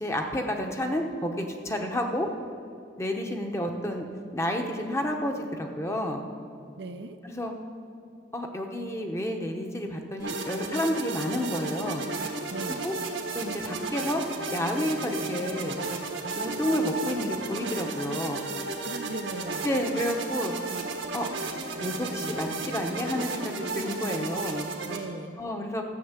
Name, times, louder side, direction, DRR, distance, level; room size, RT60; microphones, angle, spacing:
voice 1, 0.0-2.3 3.0-4.1 4.3-6.2 7.2-7.5 8.3-12.1 12.8-12.9 13.3-14.2 14.5-15.8 16.3-18.5 19.6-20.5 21.1-21.3 21.8-24.7 25.4-25.8, left 1 dB, 15° left, 3 dB, 0.9 m, -30 dB
voice 2, 6.8-7.2 12.5-12.9 18.8-19.9 24.9-25.4, right 3 dB, 65° right, 8 dB, 0.6 m, -38 dB
sound 1, 10.2-25.0, right 3 dB, 90° right, 1.6 m, -34 dB
13.5 x 6.7 x 8.1 m, 2.5 s
head